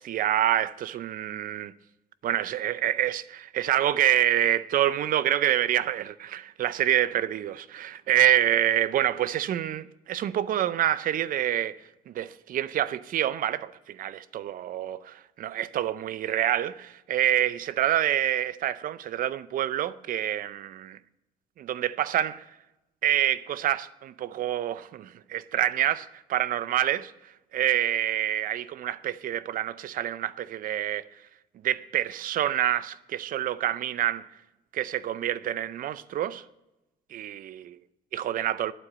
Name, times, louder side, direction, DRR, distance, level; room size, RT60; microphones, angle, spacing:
voice 1, 0.0-1.7 2.2-11.8 12.1-21.0 21.6-22.5 23.0-27.1 27.5-31.1 31.6-34.3 34.7-36.4 37.1-37.6 38.1-38.7, right 11 dB, 55° right, 0.5 m, -27 dB
9.2 x 7.8 x 8.8 m
cardioid pair, 110°, 17 cm